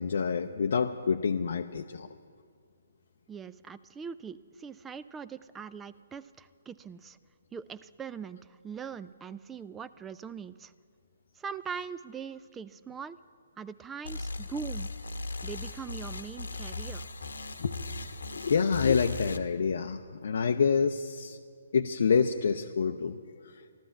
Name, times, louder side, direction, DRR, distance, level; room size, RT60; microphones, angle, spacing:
voice 1, 0.0-2.1 17.6-21.4 21.7-23.6, left 6 dB, 55° left, 5 dB, 0.5 m, -28 dB
voice 2, 3.3-7.2 7.5-10.7 11.3-13.2 13.6-14.9 15.4-17.1, right 6 dB, 10° right, 14 dB, 0.3 m, -41 dB
sound 1, 14.0-19.4, left 3 dB, 70° left, 1.0 m, -38 dB
13.5 x 13.0 x 7.2 m, 2.1 s
figure-of-eight pair, 130°, 0 cm